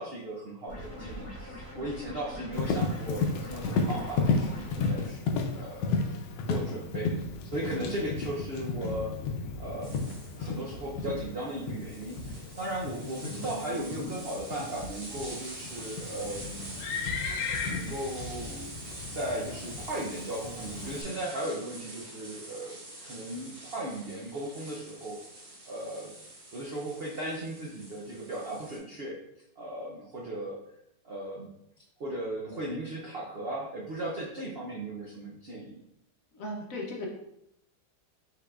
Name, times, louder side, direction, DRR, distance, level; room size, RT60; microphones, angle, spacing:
voice 1, 0.0-5.9 6.5-7.2 7.5-9.2 9.6-10.0 10.4-16.8 17.7-18.7 19.1-22.8 23.0-25.2 25.6-26.1 26.5-29.2 29.6-30.6 31.0-31.5 32.0-35.8, right 1 dB, 75° right, -3 dB, 0.5 m, -37 dB
sound 1, 0.7-5.1, left 1 dB, 10° left, 1.4 m, -43 dB
Livestock farm animals working animals, 2.5-21.0, left 4 dB, 85° left, 1.3 m, -33 dB
sound 2, 9.8-28.8, right 1 dB, 35° right, 1.6 m, -46 dB
voice 2, 36.3-37.1, left 1 dB, 60° left, -1 dB, 1.0 m, -37 dB
5.6 x 3.8 x 2.4 m, 0.80 s
omnidirectional pair, 1.9 m